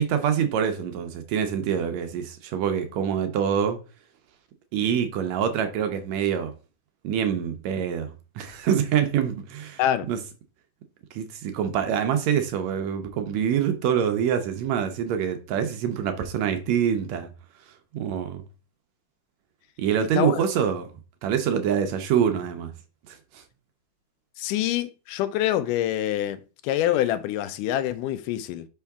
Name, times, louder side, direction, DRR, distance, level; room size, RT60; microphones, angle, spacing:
voice 1, 0.0-3.8 4.7-6.5 7.0-9.8 10.1-10.2 11.1-17.3 17.9-18.4 19.8-20.9 21.2-22.7 23.1-23.4, right 8 dB, 75° right, 1.7 m, -25 dB
voice 2, 24.4-28.7, left 12 dB, 80° left, 2.1 m, -26 dB
5.6 x 5.4 x 3.5 m
omnidirectional pair, 3.7 m